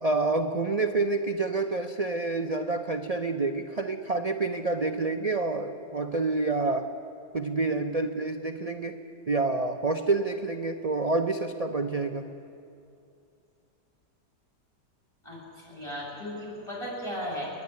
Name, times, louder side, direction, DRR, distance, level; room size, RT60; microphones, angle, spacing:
voice 1, 0.0-6.9 7.3-8.9 9.3-12.3, right 3 dB, 75° right, 5 dB, 0.3 m, -28 dB
voice 2, 15.2-17.5, equal, 15° left, -5 dB, 7.2 m, -36 dB
30.0 x 11.0 x 9.5 m, 2.6 s
omnidirectional pair, 1.9 m